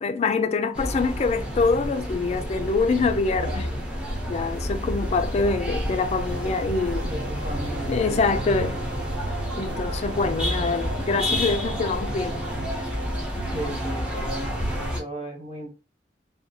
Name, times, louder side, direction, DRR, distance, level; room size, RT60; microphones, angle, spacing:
voice 1, 0.0-3.7 4.3-7.1 7.9-8.8 9.6-12.4, left 4 dB, 40° left, 0.3 m, -25 dB
sound 1, 0.7-15.0, equal, 5° right, 0.6 m, -29 dB
voice 2, 3.4-3.8 7.0-8.4 13.4-15.7, right 1 dB, 35° right, 0.9 m, -36 dB
sound 2, 5.9-13.3, right 4 dB, 70° right, 0.5 m, -41 dB
2.8 x 2.2 x 2.6 m
head